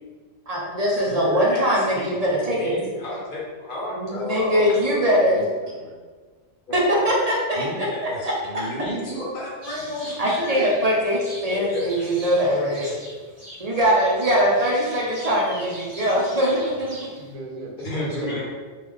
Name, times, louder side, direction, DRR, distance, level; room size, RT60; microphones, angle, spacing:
voice 1, 0.5-2.7 3.9-5.5 6.7-8.1 8.5-8.7 10.2-12.9 13.6-17.0, equal, 45° right, -4 dB, 0.5 m, -22 dB
voice 2, 1.0-4.7 7.5-10.7 11.5-12.1 12.8-12.9 17.8-18.4, left 1 dB, 40° left, -7 dB, 1.2 m, -32 dB
voice 3, 4.9-6.0 16.8-18.4, right 1 dB, 85° right, -1 dB, 1.1 m, -36 dB
sound 1, 9.6-17.3, equal, 15° right, 1.3 m, -41 dB
3.0 x 2.6 x 3.5 m, 1.4 s
omnidirectional pair, 1.4 m